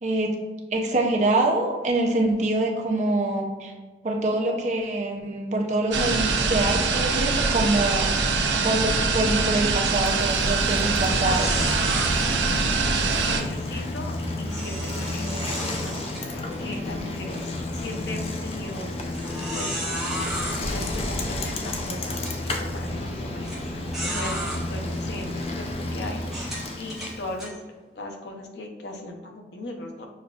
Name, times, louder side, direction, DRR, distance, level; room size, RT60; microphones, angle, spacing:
voice 1, 0.0-0.3 0.7-3.7 4.0-8.1 8.6-11.5, right 2 dB, 40° right, 1 dB, 0.5 m, -25 dB
sound 1, 5.9-13.4, right 4 dB, 90° right, 0.5 m, -23 dB
Bicycle, 9.8-27.4, left 1 dB, 35° left, 0.3 m, -31 dB
sound 2, 11.2-12.1 14.5-16.8 17.2-17.4 18.0-18.1 19.1-20.6 21.5-21.6 22.1-22.4 23.4-23.6 23.9-24.6 25.3-25.4 26.2-27.5, right 1 dB, ahead, 0.8 m, -33 dB
voice 2, 13.3-18.9 19.5-19.9 20.6-27.5 27.9-30.1, left 2 dB, 80° left, 2 dB, 0.6 m, -38 dB
6.4 x 2.3 x 2.4 m, 1.3 s
head